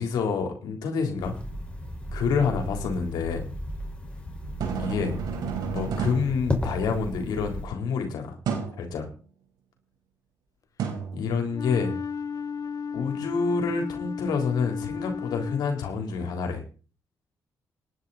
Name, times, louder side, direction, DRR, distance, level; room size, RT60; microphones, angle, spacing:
voice 1, 0.0-1.4 2.1-3.4 4.8-5.2 5.6-8.4 8.8-9.1 11.1-12.0 12.9-16.6, left 5 dB, 85° left, 4 dB, 3.7 m, -28 dB
sound 1, 1.2-7.7, left 1 dB, 15° left, 5.3 m, -34 dB
sound 2, 4.4-7.2 8.5-8.9 10.8-11.9, right 6 dB, 85° right, 4.9 m, -33 dB
Wind instrument woodwind instrument, 11.5-16.0, left 6 dB, 55° left, 0.8 m, -34 dB
18.5 x 10.5 x 4.2 m, 0.38 s
cardioid pair, 65°, 7 cm